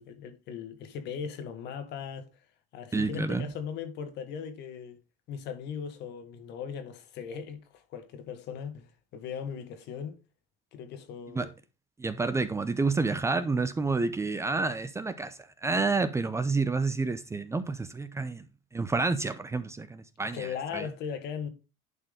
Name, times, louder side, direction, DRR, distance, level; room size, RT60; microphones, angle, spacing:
voice 1, 0.0-2.3 2.7-5.0 5.3-10.2 10.7-11.5 20.3-21.5, left 7 dB, 60° left, 1.8 m, -38 dB
voice 2, 2.9-3.5 11.3-11.5 12.0-18.4 18.7-20.9, right 3 dB, 15° right, 0.6 m, -29 dB
11.0 x 4.5 x 3.6 m
cardioid pair, 125°, 20 cm